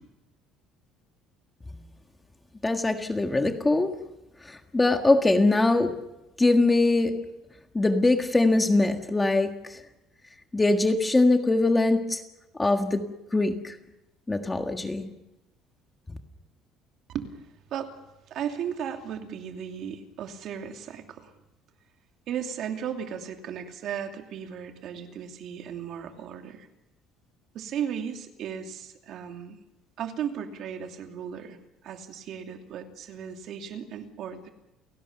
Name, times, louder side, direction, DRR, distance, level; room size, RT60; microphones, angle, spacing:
voice 1, 2.6-3.9 4.4-5.9 6.4-7.2 7.7-9.8 10.5-12.2 12.6-13.7 14.3-15.1, left 2 dB, 10° left, 5 dB, 1.7 m, -22 dB
voice 2, 18.3-21.3 22.3-26.7 27.5-29.6 30.0-31.6 31.8-34.5, right 8 dB, 50° right, 4 dB, 2.7 m, -35 dB
30.0 x 18.0 x 6.9 m, 0.95 s
cardioid pair, 160°, 0 cm